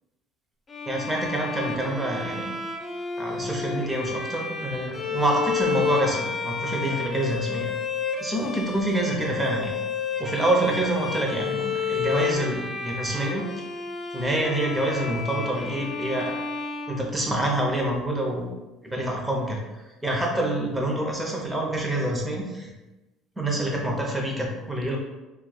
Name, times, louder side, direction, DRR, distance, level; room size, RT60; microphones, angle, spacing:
Bowed string instrument, 0.7-17.7, left 5 dB, 30° left, 0.4 m, -31 dB
voice 1, 0.9-2.5 3.2-7.7 8.2-9.7 10.2-13.4 14.1-16.4 16.9-18.5 18.8-19.6 20.0-22.7 23.4-25.0, right 1 dB, 10° right, -1 dB, 0.7 m, -27 dB
3.1 x 2.2 x 2.3 m, 1.1 s
supercardioid pair, 95°, 0 cm